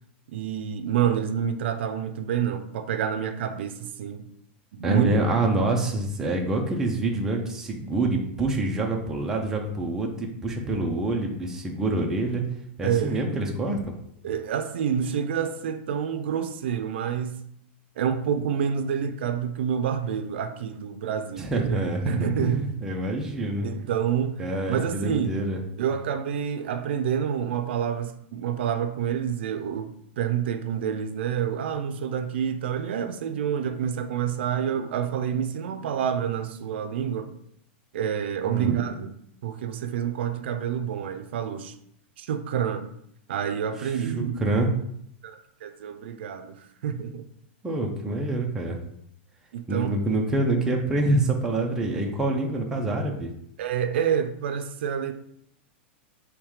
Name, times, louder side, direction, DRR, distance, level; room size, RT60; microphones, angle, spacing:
voice 1, 0.3-4.2 4.7-5.2 12.8-13.2 14.2-17.4 18.0-21.8 22.1-22.7 23.6-24.4 24.7-25.4 25.8-37.3 37.9-39.1 39.4-41.7 42.2-42.9 43.3-44.4 45.2-47.2 49.5-49.9 53.6-55.1, right 8 dB, 65° right, 0.5 m, -28 dB
voice 2, 4.8-12.4 12.8-13.8 21.4-23.7 24.4-25.6 38.4-38.7 43.8-44.7 47.6-48.8 49.7-53.3, right 2 dB, 5° right, 0.5 m, -26 dB
3.6 x 3.1 x 4.7 m
supercardioid pair, 170°, 6 cm